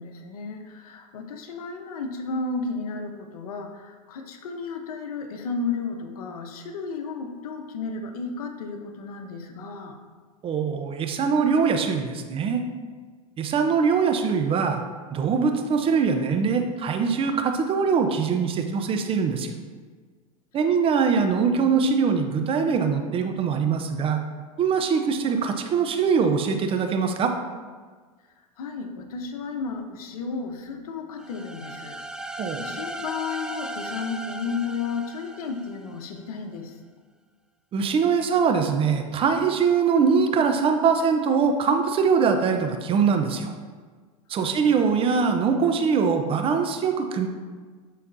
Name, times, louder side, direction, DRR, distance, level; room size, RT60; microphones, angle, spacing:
voice 1, 0.0-10.0 28.6-32.0 32.2-36.8 44.3-44.7, left 4 dB, 75° left, 5 dB, 0.9 m, -33 dB
voice 2, 10.4-12.6 13.4-14.8 15.1-19.5 20.5-24.2 24.6-27.3 32.4-32.6 37.7-43.5 44.3-47.3, right 5 dB, 30° right, 5 dB, 0.7 m, -22 dB
sound 1, 31.2-36.0, right 1 dB, 5° right, 0.4 m, -37 dB
11.5 x 4.2 x 2.7 m, 1.5 s
hypercardioid pair, 110°, 19 cm